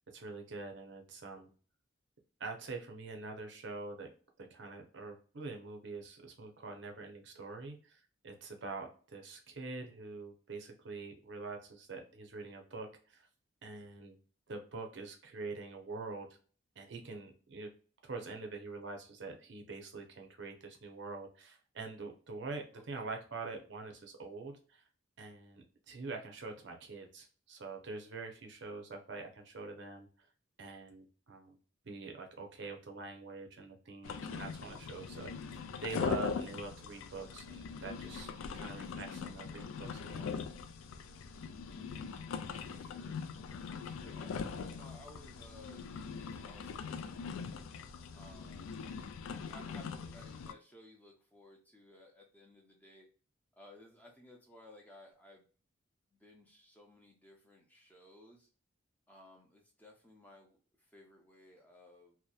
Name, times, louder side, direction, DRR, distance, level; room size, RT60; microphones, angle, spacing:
voice 1, 0.1-1.5 2.4-4.1 4.4-13.3 13.6-14.2 14.5-16.3 16.8-17.7 18.0-24.8 25.2-30.1 30.6-31.6 31.8-40.3, right 3 dB, 60° right, 4 dB, 0.5 m, -45 dB
voice 2, 22.7-23.1 42.6-43.2 43.6-47.5 48.1-48.9 49.5-53.1 53.6-55.5 56.1-58.5 59.1-62.2, left 1 dB, 10° left, 0 dB, 0.5 m, -58 dB
sound 1, 34.0-50.5, left 5 dB, 85° left, 0.3 m, -41 dB
2.7 x 2.1 x 2.2 m, 0.39 s
head